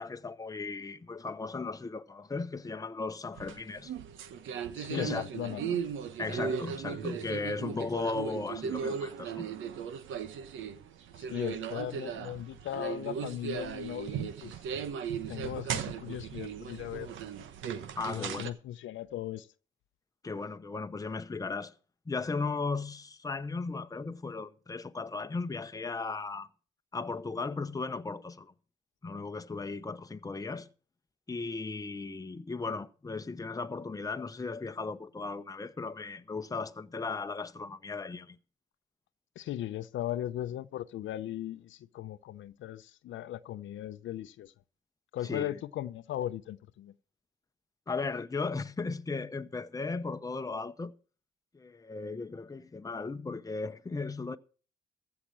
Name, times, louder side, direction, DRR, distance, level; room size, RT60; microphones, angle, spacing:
voice 1, 0.0-3.9 4.9-5.2 6.2-9.5 17.9-18.5 20.2-21.7 22.1-26.5 26.9-28.5 29.0-30.7 31.3-38.4 45.2-45.6 47.9-50.9 51.5-54.4, left 4 dB, 20° left, 0.8 m, -36 dB
sound 1, 3.3-18.5, right 7 dB, 80° right, 1.1 m, -37 dB
voice 2, 4.8-5.8 11.2-14.5 15.3-17.1 18.1-19.5 39.4-44.5 45.1-46.9, left 12 dB, 75° left, 0.7 m, -38 dB
15.0 x 5.9 x 7.6 m
cardioid pair, 90°, 20 cm